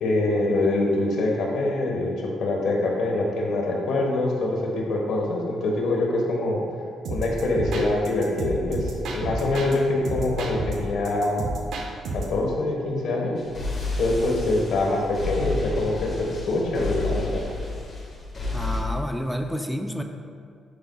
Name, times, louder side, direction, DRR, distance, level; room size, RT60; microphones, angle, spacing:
voice 1, 0.0-6.6 7.1-11.4 12.1-13.4 14.0-17.4, left 2 dB, 70° left, -1 dB, 1.3 m, -24 dB
sound 1, 7.0-9.8 10.0-12.4, right 2 dB, 80° right, 0.8 m, -31 dB
sound 2, 13.4-18.8, left 2 dB, 40° left, 1.6 m, -31 dB
voice 2, 18.5-20.0, equal, ahead, 4 dB, 0.5 m, -29 dB
10.0 x 5.2 x 2.3 m, 2.2 s
cardioid pair, 90°, 0 cm